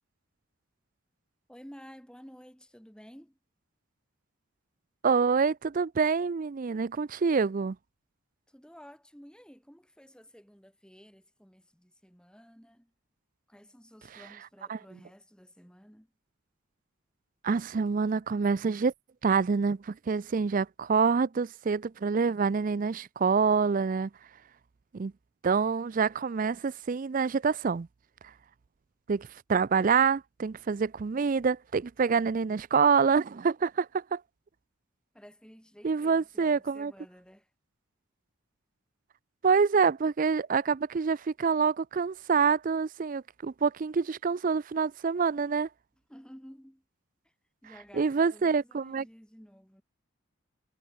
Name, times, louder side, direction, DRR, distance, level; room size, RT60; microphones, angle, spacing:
voice 1, 1.5-3.4 8.5-12.9 13.5-16.1 35.1-37.5 46.1-46.8 47.2-47.3 47.6-49.8, equal, 5° left, 6.7 m, -53 dB
voice 2, 5.0-7.8 14.7-14.8 17.4-18.9 19.2-24.1 24.9-25.1 25.4-27.9 29.1-34.2 35.8-36.9 39.4-45.7 47.9-49.0, right 5 dB, 40° right, 0.4 m, -26 dB
head